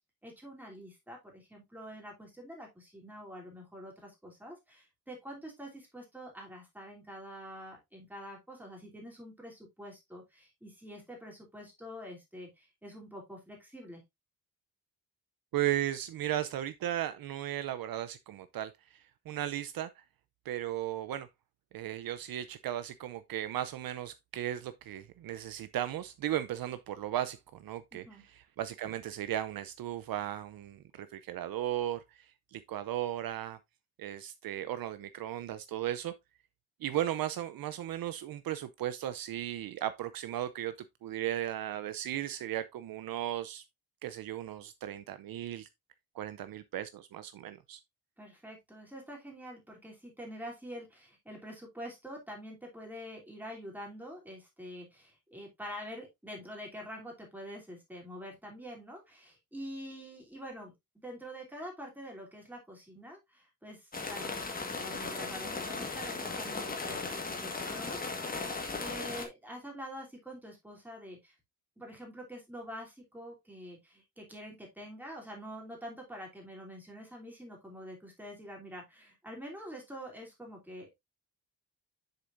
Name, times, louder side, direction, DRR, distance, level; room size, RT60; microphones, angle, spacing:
voice 1, 0.2-14.0 27.9-28.2 48.2-64.4 64.6-71.3 71.8-80.9, equal, 5° right, 2.9 m, -46 dB
voice 2, 15.5-20.0 20.4-21.3 21.7-33.6 34.0-36.1 36.8-40.7 41.0-43.6 44.0-45.7 46.1-47.8, right 12 dB, 60° right, 0.6 m, -36 dB
sound 1, 63.9-69.3, left 3 dB, 20° left, 1.5 m, -37 dB
7.7 x 6.8 x 2.5 m
wide cardioid pair, 175°, 39 cm